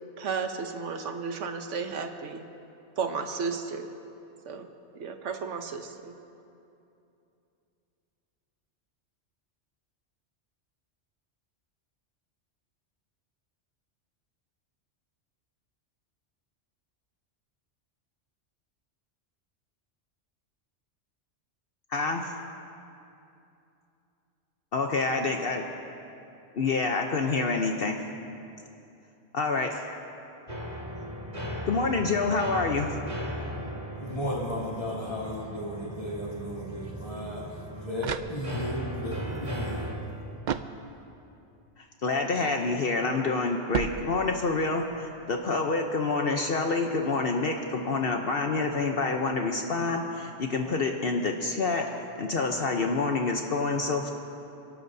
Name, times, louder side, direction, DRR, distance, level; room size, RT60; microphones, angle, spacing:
voice 1, 0.2-2.4 3.0-3.9 4.5-4.7 5.0-6.1, right 5 dB, 90° right, 6 dB, 1.2 m, -33 dB
voice 2, 21.9-22.3 24.7-25.6 26.5-28.0 29.3-30.0 31.7-33.1 41.8-51.9 52.2-54.1, left 3 dB, 55° left, 3 dB, 1.0 m, -27 dB
sound 1, 30.5-40.0, equal, 40° right, 2.1 m, -37 dB
voice 3, 34.0-39.9, equal, 30° left, -6 dB, 3.0 m, -35 dB
sound 2, 38.0-38.9 40.4-41.3 43.7-44.6, right 7 dB, 60° right, 0.5 m, -35 dB
30.0 x 12.0 x 2.7 m, 2.7 s
omnidirectional pair, 1.2 m